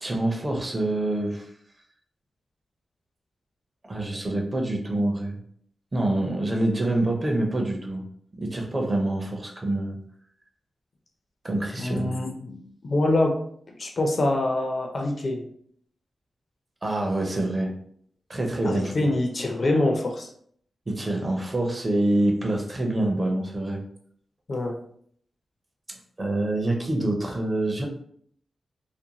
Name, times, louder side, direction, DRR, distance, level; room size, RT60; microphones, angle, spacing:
voice 1, 0.0-1.5 3.8-5.4 5.9-8.0 8.4-10.0 11.4-12.2 16.8-17.7 18.3-18.9 20.9-23.8 26.2-27.9, right 1 dB, 25° right, 1 dB, 0.5 m, -26 dB
voice 2, 11.8-13.4 13.8-15.4 18.6-20.3 24.5-24.7, left 2 dB, 45° left, 2 dB, 0.4 m, -25 dB
2.5 x 2.2 x 2.8 m, 0.63 s
wide cardioid pair, 120°, 0 cm